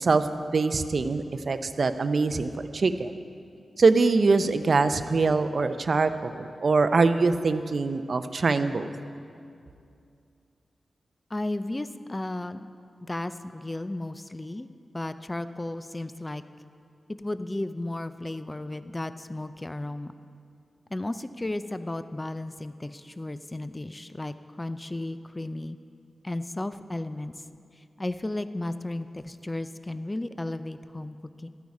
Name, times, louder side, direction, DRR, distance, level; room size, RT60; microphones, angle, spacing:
voice 1, 0.0-3.1 3.8-8.9, right 4 dB, 60° right, 10 dB, 0.5 m, -23 dB
voice 2, 11.3-12.7 13.0-14.7 14.9-16.4 17.2-20.1 20.9-25.8 26.2-27.3 28.0-31.5, left 1 dB, 20° left, 12 dB, 0.4 m, -34 dB
13.5 x 9.4 x 4.8 m, 2.4 s
cardioid pair, 70°, 0 cm